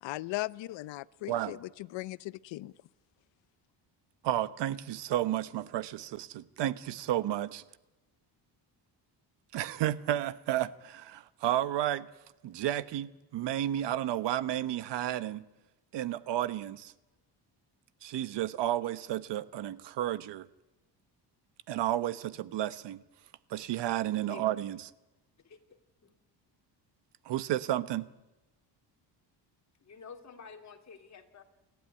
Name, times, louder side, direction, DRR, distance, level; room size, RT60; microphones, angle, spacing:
voice 1, 0.0-2.7, left 18 dB, 85° left, 0.7 m, -38 dB
voice 2, 4.2-7.6 9.5-12.1 12.4-15.4 15.9-16.9 18.0-20.4 21.7-23.0 23.5-24.8 27.2-28.1, right 13 dB, 70° right, 1.2 m, -32 dB
voice 3, 25.4-26.1 29.8-31.4, left 5 dB, 40° left, 3.0 m, -50 dB
29.5 x 12.5 x 9.6 m
cardioid pair, 130°, 43 cm